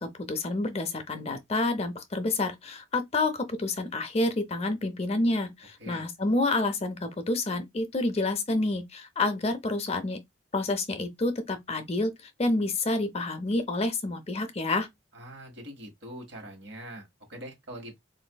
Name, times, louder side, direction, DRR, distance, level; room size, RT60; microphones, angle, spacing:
voice 1, 0.0-10.2 10.5-12.1 12.4-14.9, left 2 dB, 30° left, 0.5 m, -28 dB
voice 2, 15.1-18.0, right 1 dB, 60° right, 1.6 m, -43 dB
4.2 x 2.5 x 2.2 m
head